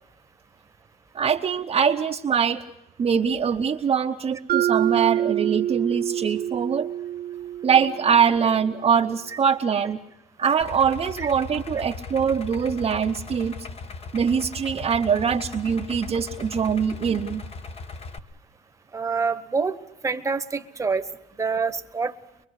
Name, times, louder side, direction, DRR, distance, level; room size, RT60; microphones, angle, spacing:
voice 1, 1.1-2.6 3.0-6.9 7.6-10.0 10.4-13.5 14.1-17.4, right 7 dB, 35° right, 2 dB, 0.8 m, -23 dB
Mallet percussion, 4.5-8.5, right 12 dB, 60° right, 1.0 m, -26 dB
Idling, 10.6-18.2, left 3 dB, 35° left, 1.3 m, -38 dB
voice 2, 18.9-19.8 20.0-21.0 21.4-22.1, right 5 dB, 15° right, 9 dB, 1.2 m, -26 dB
23.5 x 23.0 x 6.5 m, 0.86 s
cardioid pair, 110°, 17 cm